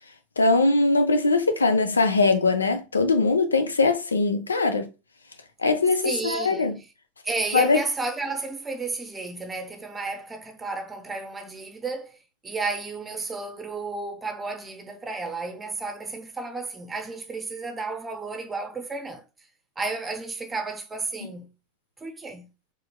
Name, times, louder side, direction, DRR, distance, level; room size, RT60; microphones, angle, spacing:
voice 1, 0.4-4.9 5.6-6.8 7.5-7.8, left 3 dB, 80° left, 0.5 m, -21 dB
voice 2, 6.0-6.7 7.2-12.2 12.4-19.2 19.8-21.5 22.0-22.5, right 3 dB, 15° right, 0.8 m, -32 dB
4.5 x 3.2 x 2.3 m
figure-of-eight pair, 85°, 0 cm